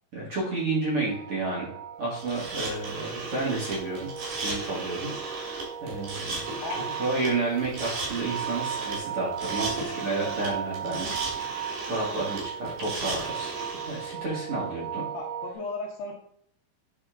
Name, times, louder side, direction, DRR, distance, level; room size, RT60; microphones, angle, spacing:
voice 1, 0.1-1.7 2.0-11.1 11.9-15.0, right 3 dB, 40° right, -6 dB, 2.4 m, -31 dB
sound 1, 1.1-15.6, right 9 dB, 85° right, 3.0 m, -37 dB
sound 2, 2.2-14.1, right 3 dB, 65° right, 4.2 m, -36 dB
voice 2, 6.6-7.0 10.8-11.2 15.1-16.1, left 3 dB, 70° left, 0 dB, 2.9 m, -36 dB
9.7 x 4.4 x 3.7 m, 0.67 s
omnidirectional pair, 4.7 m